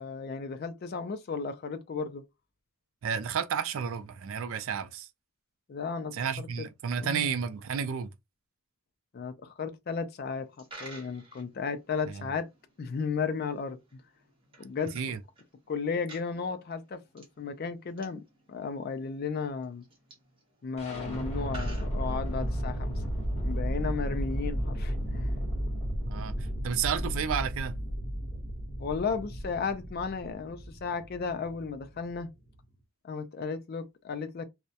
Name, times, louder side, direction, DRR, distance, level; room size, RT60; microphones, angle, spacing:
voice 1, 0.0-2.2 5.7-6.7 7.0-7.3 9.1-10.5 10.8-12.5 12.8-14.0 14.6-15.0 15.7-19.8 20.6-22.9 23.4-25.3 28.8-32.3 33.0-34.5, left 5 dB, 45° left, 0.3 m, -34 dB
voice 2, 3.0-5.1 6.1-8.1 12.1-12.3 14.9-15.2 26.1-27.8, right 7 dB, 65° right, 0.3 m, -32 dB
Coin (dropping), 10.4-22.7, right 3 dB, 25° right, 0.8 m, -54 dB
sound 1, 20.8-32.6, equal, 30° left, 1.0 m, -33 dB
2.2 x 2.0 x 2.7 m
head